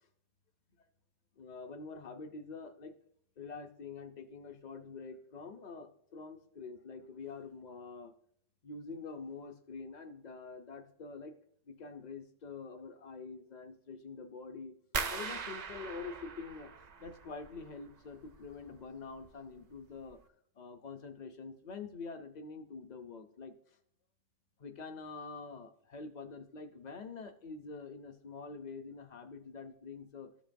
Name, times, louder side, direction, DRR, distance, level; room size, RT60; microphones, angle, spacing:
voice 1, 1.4-2.9 3.4-8.1 8.6-11.3 11.7-14.7 15.1-16.7 17.0-20.2 20.6-23.5 24.6-30.3, left 4 dB, 45° left, 7 dB, 0.6 m, -46 dB
sound 1, 14.9-17.8 18.1-18.8 19.2-19.6 20.0-20.1, right 5 dB, 60° right, 0.4 m, -40 dB
13.5 x 5.1 x 2.6 m, 0.64 s
omnidirectional pair, 1.4 m